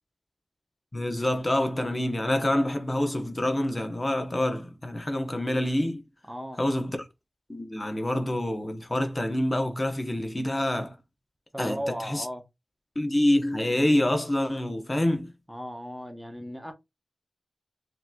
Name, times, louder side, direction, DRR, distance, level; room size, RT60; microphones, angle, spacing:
voice 1, 0.9-6.0 6.6-7.0 7.5-11.0 11.6-12.3 13.0-15.3, left 1 dB, 30° left, 0.9 m, -26 dB
voice 2, 6.3-6.6 11.5-12.4 15.5-16.7, equal, 5° right, 0.8 m, -36 dB
5.7 x 3.0 x 2.2 m
wide cardioid pair, 60°, 0 cm